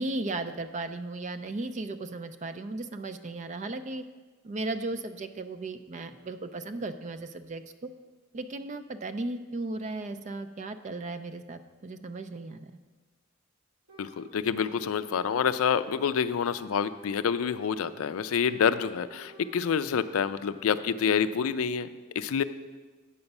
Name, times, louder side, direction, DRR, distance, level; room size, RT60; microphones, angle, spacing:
voice 1, 0.0-4.0 4.4-7.9 8.3-12.7, right 2 dB, 35° right, 10 dB, 0.4 m, -36 dB
sound 1, 13.9-14.3 14.5-16.1 16.3-17.9 18.1-19.7 19.9-20.9, right 2 dB, 80° right, 1.5 m, -54 dB
voice 2, 14.0-21.9 22.2-22.4, left 7 dB, 75° left, 13 dB, 0.4 m, -27 dB
8.9 x 6.9 x 5.4 m, 1.4 s
head